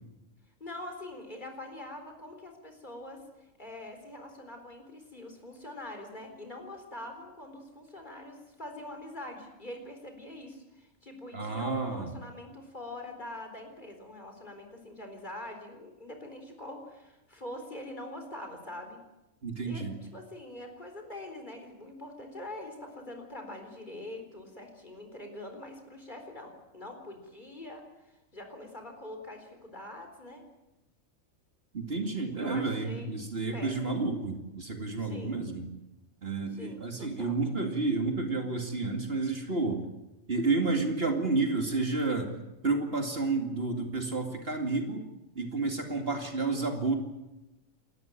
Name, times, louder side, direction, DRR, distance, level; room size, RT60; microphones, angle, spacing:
voice 1, 0.6-19.0 19.7-19.8 20.1-30.4 32.4-33.1 33.5-34.0 35.0-35.4 36.5-37.4, left 1 dB, 35° left, 4 dB, 4.2 m, -44 dB
voice 2, 11.3-12.1 19.4-19.9 31.7-35.6 36.2-39.9 40.3-42.3 42.6-45.0 45.3-47.0, right 3 dB, 45° right, 4 dB, 2.6 m, -30 dB
29.5 x 13.5 x 9.1 m, 0.98 s
omnidirectional pair, 1.4 m